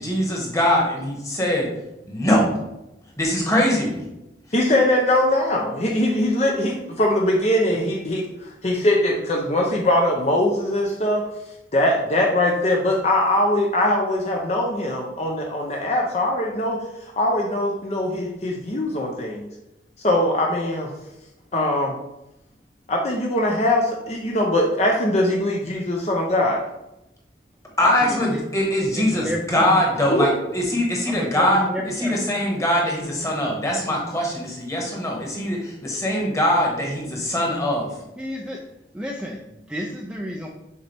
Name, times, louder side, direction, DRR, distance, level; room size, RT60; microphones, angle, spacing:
voice 1, 0.0-1.7 2.1-2.5 3.2-4.0 27.8-31.6 32.0-37.9, left 1 dB, 15° left, -2 dB, 1.4 m, -22 dB
voice 2, 4.5-11.2 11.7-19.5 20.0-20.9 21.5-21.9 22.9-26.6 30.1-30.3, left 1 dB, 35° left, 0 dB, 0.6 m, -21 dB
voice 3, 27.8-28.4 29.0-29.8 31.1-32.3 38.2-38.6 38.9-40.5, equal, 5° right, -1 dB, 0.4 m, -31 dB
6.5 x 4.2 x 3.4 m, 0.91 s
head